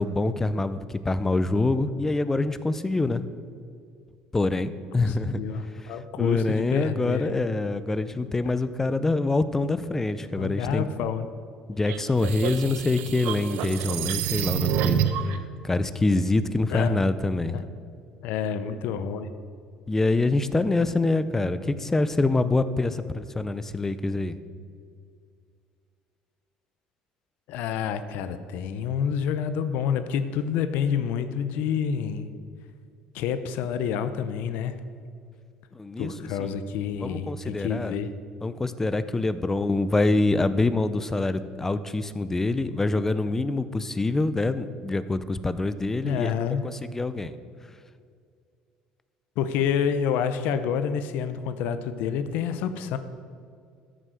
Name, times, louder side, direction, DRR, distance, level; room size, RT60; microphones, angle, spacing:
voice 1, 0.0-3.3 4.3-5.4 5.8-10.9 11.7-15.3 15.6-17.6 19.9-24.3 35.7-36.1 36.4-36.6 37.0-37.9 38.4-46.3 46.6-47.4, left 2 dB, 15° left, 13 dB, 0.6 m, -25 dB
voice 2, 5.1-7.4 10.4-11.3 16.7-17.1 17.5-17.6 18.2-19.3 27.5-32.3 33.1-34.8 36.0-38.1 46.0-46.6 49.4-53.0, left 7 dB, 75° left, 10 dB, 0.7 m, -28 dB
sound 1, 11.9-15.4, right 9 dB, 75° right, 0.8 m, -28 dB
13.5 x 6.5 x 6.3 m, 2.3 s
cardioid pair, 130°, 3 cm